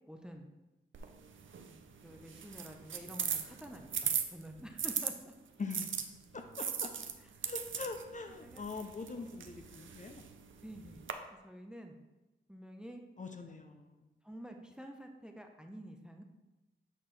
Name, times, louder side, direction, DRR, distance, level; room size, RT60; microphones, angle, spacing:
voice 1, 0.1-0.5 2.0-5.3 8.4-8.6 9.1-9.2 10.6-11.0 11.4-12.0 12.5-13.0 14.2-16.2, right 1 dB, 5° right, 4 dB, 0.7 m, -49 dB
sound 1, 0.9-5.1 5.7-11.1, right 7 dB, 75° right, 0.5 m, -39 dB
voice 2, 5.6-6.0 6.3-6.9 7.4-10.2 13.2-14.1, left 4 dB, 40° left, 5 dB, 0.6 m, -43 dB
7.6 x 4.3 x 3.3 m, 1.1 s
cardioid pair, 60°, 20 cm